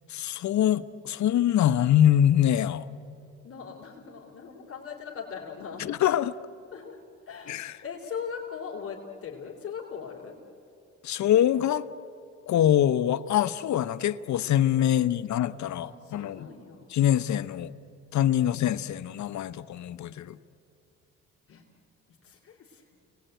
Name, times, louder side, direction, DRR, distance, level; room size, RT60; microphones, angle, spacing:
voice 1, 0.1-2.8 5.8-6.3 7.5-7.7 11.0-11.9 12.5-15.9 16.1-16.5 16.9-17.7 18.1-20.4, left 11 dB, 70° left, 13 dB, 0.9 m, -24 dB
voice 2, 3.4-5.9 6.7-7.0 7.3-10.4 14.9-16.9 21.5-21.6 22.2-22.8, left 6 dB, 45° left, -3 dB, 3.6 m, -40 dB
30.0 x 20.0 x 9.2 m, 2.8 s
cardioid pair, 90°, 30 cm